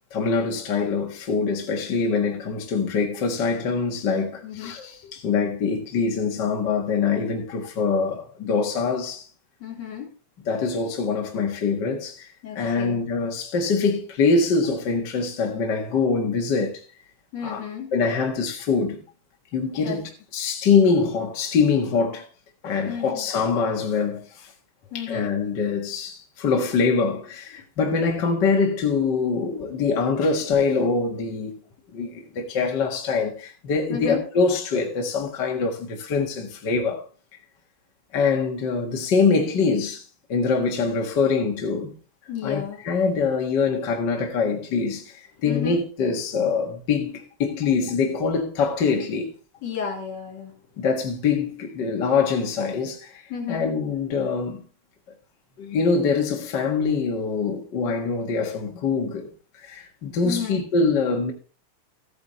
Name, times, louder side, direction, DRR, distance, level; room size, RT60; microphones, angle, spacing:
voice 1, 0.1-9.3 10.5-12.3 12.5-16.8 17.4-17.6 17.9-19.0 19.5-22.3 22.6-24.5 24.9-31.5 31.9-37.1 38.1-40.0 40.3-41.9 42.4-49.3 50.8-53.2 53.5-54.6 55.6-59.3 59.6-61.3, left 5 dB, 45° left, 1.9 m, -24 dB
voice 2, 4.4-4.8 5.0-5.1 9.6-10.1 12.4-13.0 17.3-17.9 19.8-20.0 22.8-23.3 24.9-25.4 33.9-34.2 42.3-42.8 45.5-45.8 49.6-50.5 53.3-53.7 60.2-60.6, left 7 dB, 65° left, 4.6 m, -32 dB
14.0 x 9.6 x 3.1 m
omnidirectional pair, 3.3 m